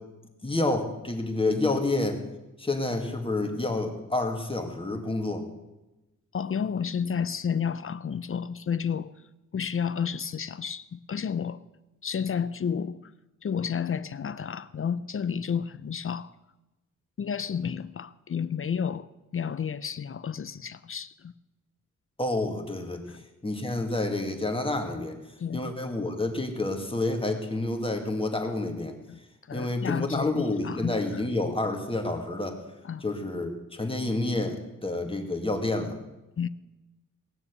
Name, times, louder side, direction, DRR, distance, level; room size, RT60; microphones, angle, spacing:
voice 1, 0.4-2.2 2.6-5.4 22.2-25.2 25.5-28.9 29.5-32.6 33.0-36.0, left 2 dB, 15° left, 2.0 m, -29 dB
voice 2, 6.3-9.1 9.5-11.6 12.0-13.1 13.4-16.3 17.2-21.3 23.1-23.2 25.4-25.7 29.1-29.2 29.5-31.2 32.8-33.0 36.4-36.5, left 7 dB, 45° left, 0.5 m, -31 dB
19.0 x 7.1 x 8.2 m
wide cardioid pair, 115°, 32 cm